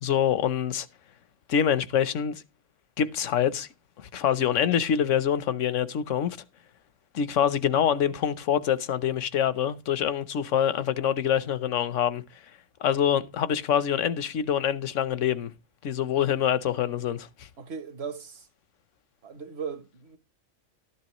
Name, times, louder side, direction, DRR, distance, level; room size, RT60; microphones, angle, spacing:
voice 1, 0.0-0.9 1.5-2.4 3.0-3.7 4.0-6.4 7.1-12.2 12.8-15.5 15.8-17.3, left 9 dB, 80° left, 1.2 m, -25 dB
voice 2, 17.6-18.5 19.2-20.2, right 6 dB, 60° right, 1.2 m, -37 dB
13.0 x 10.5 x 3.0 m
omnidirectional pair, 1.3 m